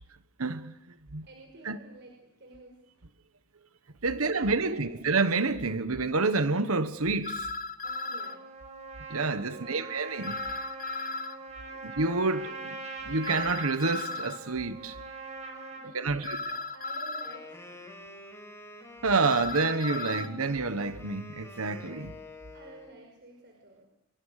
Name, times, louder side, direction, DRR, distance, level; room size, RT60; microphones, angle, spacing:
voice 1, 0.4-0.7 1.1-1.3 1.6-1.8 4.0-7.5 9.1-10.4 11.8-12.8 13.0-15.0 15.9-16.4 19.0-22.1, right 3 dB, 70° right, 1.2 m, -28 dB
voice 2, 1.2-2.8 4.1-5.0 8.0-8.4 9.5-10.0 11.7-11.9 15.7-17.8 22.5-23.9, right 2 dB, 50° right, 5.4 m, -50 dB
sound 1, 7.2-8.4 10.2-11.4 13.2-14.4 16.2-17.4 19.2-20.3, left 3 dB, 35° left, 1.1 m, -35 dB
Trumpet, 7.8-15.9, right 3 dB, 30° right, 6.1 m, -42 dB
Wind instrument woodwind instrument, 17.1-23.0, left 1 dB, 10° left, 5.6 m, -47 dB
27.5 x 24.0 x 6.6 m
head